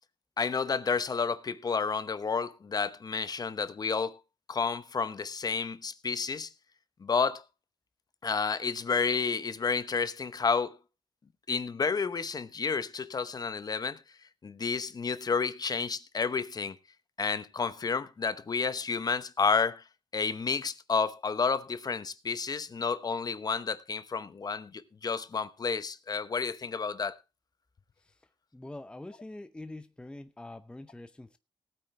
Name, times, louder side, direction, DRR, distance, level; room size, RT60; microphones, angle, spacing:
voice 1, 0.4-4.2 4.5-6.5 7.0-7.4 8.2-10.7 11.5-14.0 14.4-16.8 17.2-19.8 20.1-27.2, left 5 dB, 35° left, 0.9 m, -30 dB
voice 2, 28.5-31.4, left 2 dB, 10° left, 0.7 m, -44 dB
19.0 x 8.9 x 3.2 m
cardioid pair, 110°, 11 cm